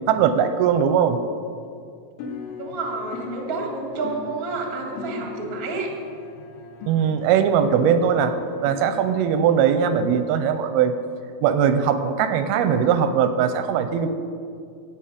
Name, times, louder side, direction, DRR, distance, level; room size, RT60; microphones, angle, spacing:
voice 1, 0.1-1.2 6.9-8.3 8.6-10.9 11.4-14.1, right 8 dB, 90° right, 9 dB, 2.5 m, -20 dB
sound 1, 2.2-9.6, left 4 dB, 90° left, 2.9 m, -38 dB
voice 2, 2.6-5.9, right 3 dB, 35° right, 0 dB, 1.4 m, -29 dB
16.5 x 7.3 x 5.1 m, 2.3 s
omnidirectional pair, 4.4 m